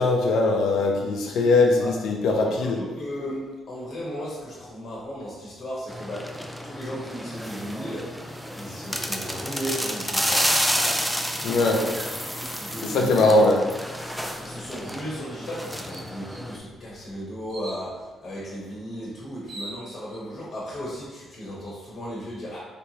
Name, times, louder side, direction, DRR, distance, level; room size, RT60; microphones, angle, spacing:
voice 1, 0.0-2.8 11.4-11.8 12.8-13.6, left 2 dB, 80° left, 1 dB, 0.6 m, -20 dB
voice 2, 2.3-6.4 6.6-11.1 11.4-13.4 14.4-22.6, equal, 50° left, -5 dB, 1.1 m, -36 dB
sound 1, 5.9-16.6, equal, ahead, 0.4 m, -30 dB
sound 2, 14.9-15.0 15.5-15.6 15.9-16.5 17.5-17.9 19.0-19.1 19.3-20.2, right 2 dB, 65° right, 0.9 m, -41 dB
3.3 x 3.1 x 2.8 m, 1.2 s
cardioid pair, 90°, 0 cm